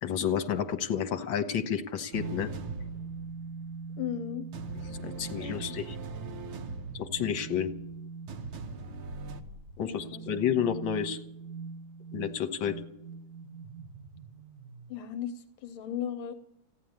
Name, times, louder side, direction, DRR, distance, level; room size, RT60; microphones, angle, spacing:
voice 1, 0.0-2.5 5.0-6.0 6.9-7.7 9.8-11.2 12.1-12.8, left 8 dB, 65° left, 7 dB, 1.9 m, -30 dB
sound 1, 2.1-14.9, right 4 dB, 50° right, 1.3 m, -43 dB
sound 2, 2.1-4.2 4.5-9.4, right 4 dB, 75° right, 2.2 m, -41 dB
voice 2, 4.0-4.5 5.4-5.7 9.8-10.2 14.9-16.3, left 9 dB, 85° left, 9 dB, 1.7 m, -36 dB
15.0 x 10.5 x 9.4 m, 0.79 s
omnidirectional pair, 2.3 m